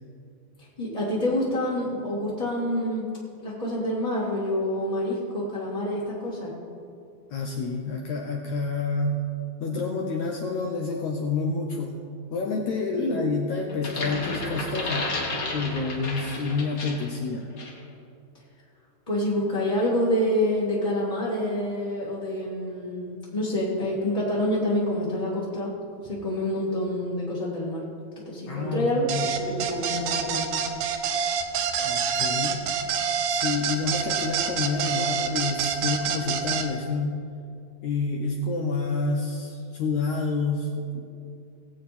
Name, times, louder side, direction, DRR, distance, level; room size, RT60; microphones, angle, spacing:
voice 1, 0.8-3.1 3.4-6.5 13.0-13.2 19.1-25.7 26.0-27.8 28.2-29.1 29.4-30.5, left 1 dB, 15° left, -7 dB, 1.2 m, -27 dB
voice 2, 7.3-9.2 9.6-15.1 15.5-17.5 28.5-29.3 31.8-32.6 33.3-37.2 37.8-41.0, left 3 dB, 75° left, 1 dB, 1.7 m, -28 dB
sound 1, 13.7-17.2 17.6-17.8, left 2 dB, 45° left, 1.1 m, -32 dB
sound 2, 29.1-36.7, right 7 dB, 75° right, 1.9 m, -27 dB
19.5 x 8.3 x 4.3 m, 2.5 s
omnidirectional pair, 4.2 m